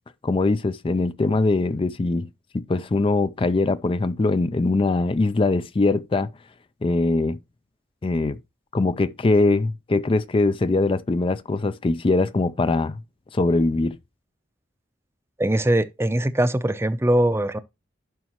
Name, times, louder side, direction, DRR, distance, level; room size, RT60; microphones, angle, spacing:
voice 1, 0.2-2.3 2.5-6.3 6.8-7.4 8.0-8.4 8.7-13.0 13.3-14.0, left 2 dB, 30° left, 0.4 m, -22 dB
voice 2, 15.4-17.6, right 1 dB, 15° right, 0.6 m, -21 dB
11.5 x 5.8 x 3.0 m
head